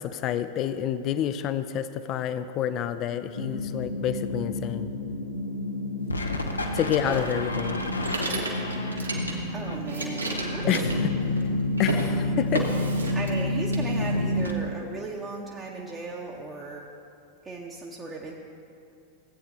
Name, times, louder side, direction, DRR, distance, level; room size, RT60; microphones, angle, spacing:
voice 1, 0.0-4.9 6.7-7.8 10.7-10.9 11.8-12.7, left 10 dB, 35° left, 12 dB, 0.4 m, -28 dB
sound 1, 3.4-14.5, left 1 dB, 80° left, 0.7 m, -29 dB
sound 2, 6.9-9.5 9.8-11.5 11.8-12.1 12.5-13.4 13.7-14.5, right 2 dB, 80° right, 1.2 m, -33 dB
voice 2, 7.0-7.3 9.5-11.0 13.1-16.9 17.4-18.3, right 3 dB, 20° right, -2 dB, 0.8 m, -36 dB
16.0 x 8.6 x 2.7 m, 2.5 s
figure-of-eight pair, 90°, 0 cm